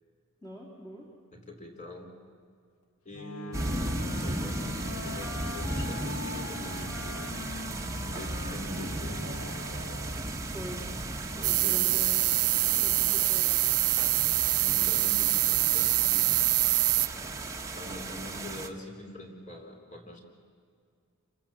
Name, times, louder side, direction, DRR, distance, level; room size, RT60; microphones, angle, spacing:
voice 1, 0.4-1.1 10.5-12.3 12.8-13.6, equal, 20° left, -2 dB, 3.0 m, -43 dB
voice 2, 1.3-2.1 3.1-7.4 8.2-9.6 11.4-12.1 12.6-12.9 14.6-16.3 17.7-20.2, left 1 dB, 35° left, 2 dB, 3.6 m, -44 dB
Wind instrument woodwind instrument, 3.1-10.5, left 4 dB, 75° left, 1.1 m, -42 dB
sound 1, 3.5-18.7, right 2 dB, 15° right, 1.3 m, -36 dB
sound 2, 11.4-17.1, right 19 dB, 85° right, 0.7 m, -25 dB
28.5 x 24.5 x 7.5 m, 2.2 s
head